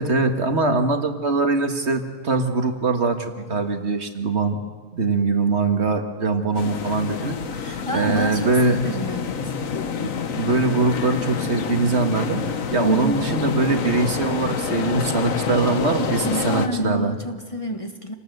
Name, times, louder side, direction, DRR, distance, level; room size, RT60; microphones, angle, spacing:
voice 1, 0.0-4.6 4.9-7.4 7.9-8.9 9.4-9.6 10.0-10.1 10.4-12.4 12.7-17.1, right 3 dB, 55° right, 6 dB, 2.0 m, -22 dB
sound 1, 6.5-16.7, left 6 dB, 75° left, 1.6 m, -28 dB
voice 2, 7.5-9.6 12.8-13.2 16.2-18.1, right 1 dB, 25° left, 5 dB, 1.7 m, -28 dB
28.0 x 19.0 x 8.0 m, 1.5 s
omnidirectional pair, 1.4 m